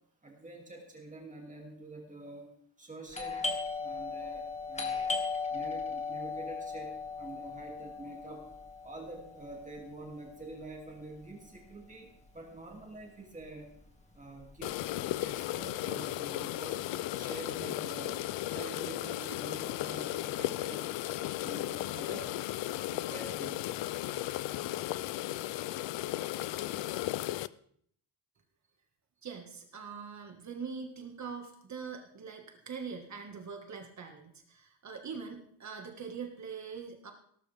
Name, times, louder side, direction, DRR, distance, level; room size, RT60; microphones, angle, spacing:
voice 1, 0.2-2.5 2.8-3.4 3.8-5.1 5.5-8.5 8.8-13.7 14.1-14.8 15.2-16.8 17.1-18.2 18.5-21.0 21.4-22.3 22.9-23.7, right 2 dB, 15° right, -1 dB, 2.7 m, -46 dB
Doorbell, 3.1-12.5 12.7-12.8 13.5-13.8 14.1-15.5, left 4 dB, 15° left, 2.0 m, -37 dB
sound 1, 14.6-27.5, left 15 dB, 80° left, 0.6 m, -35 dB
voice 2, 29.2-37.1, right 5 dB, 40° right, 3 dB, 1.8 m, -43 dB
18.0 x 13.0 x 3.5 m, 0.65 s
cardioid pair, 150°, 44 cm